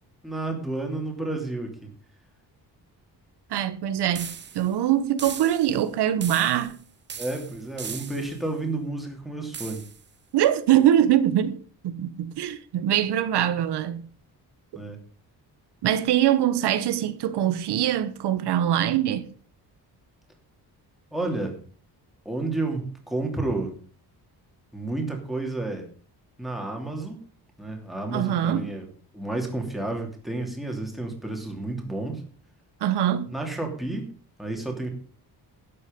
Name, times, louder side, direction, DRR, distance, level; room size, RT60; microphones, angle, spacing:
voice 1, 0.2-1.9 7.1-9.8 14.7-15.0 21.1-21.6 22.2-23.8 24.7-25.9 26.4-27.2 27.6-28.9 29.1-32.2 33.3-34.1 34.4-34.9, right 2 dB, ahead, 2.9 m, -31 dB
voice 2, 3.5-6.8 10.3-11.6 11.8-14.1 15.8-19.3 28.1-28.7 32.8-33.3, right 11 dB, 90° right, 1.3 m, -23 dB
sound 1, 4.1-4.7 5.2-5.8 6.2-6.8 7.1-8.4 9.5-10.0, right 7 dB, 30° right, 0.7 m, -38 dB
12.0 x 9.8 x 5.3 m
wide cardioid pair, 175°, 39 cm